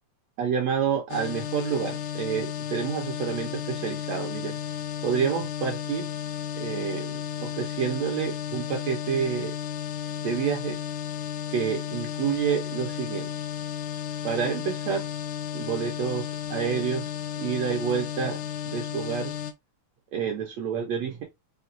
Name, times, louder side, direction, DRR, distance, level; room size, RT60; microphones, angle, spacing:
voice 1, 0.4-4.6 5.0-6.1 6.6-9.5 10.2-10.8 11.5-13.3 14.2-15.1 15.5-17.1 17.4-19.3 20.1-21.2, right 7 dB, 70° right, 1.8 m, -29 dB
sound 1, 1.1-19.5, left 9 dB, 80° left, 2.0 m, -33 dB
5.8 x 2.3 x 2.6 m
omnidirectional pair, 3.5 m